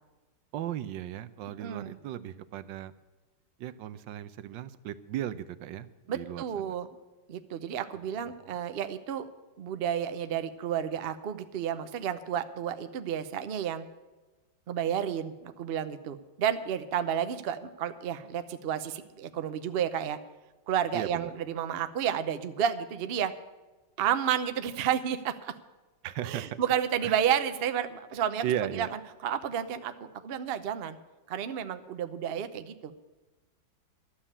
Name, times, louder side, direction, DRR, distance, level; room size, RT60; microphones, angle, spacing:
voice 1, 0.5-2.9 3.6-6.8 20.9-21.3 26.0-26.6 27.0-27.2 28.4-28.9, right 11 dB, 85° right, 13 dB, 1.3 m, -36 dB
voice 2, 1.6-1.9 6.1-6.9 7.3-9.3 9.6-13.9 14.7-20.2 20.7-23.3 24.0-25.5 26.2-28.4 28.7-28.9 29.2-31.0 31.3-32.9, right 9 dB, 60° right, 10 dB, 0.6 m, -31 dB
12.0 x 7.3 x 9.8 m, 1.2 s
omnidirectional pair, 2.0 m